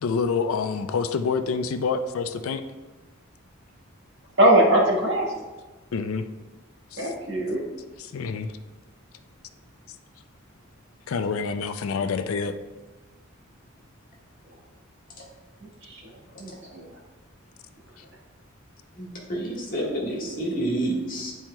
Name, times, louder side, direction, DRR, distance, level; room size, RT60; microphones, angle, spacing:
voice 1, 0.0-2.6 5.9-6.2 6.9-7.1 8.0-8.5 11.1-12.5 18.0-18.1, left 5 dB, 85° left, 9 dB, 0.4 m, -27 dB
voice 2, 4.4-5.2 7.0-7.6 15.9-16.0 16.4-16.9, right 1 dB, 55° right, -3 dB, 1.4 m, -21 dB
voice 3, 19.0-21.3, right 1 dB, 40° left, -3 dB, 1.4 m, -29 dB
10.5 x 4.4 x 2.2 m, 1.2 s
head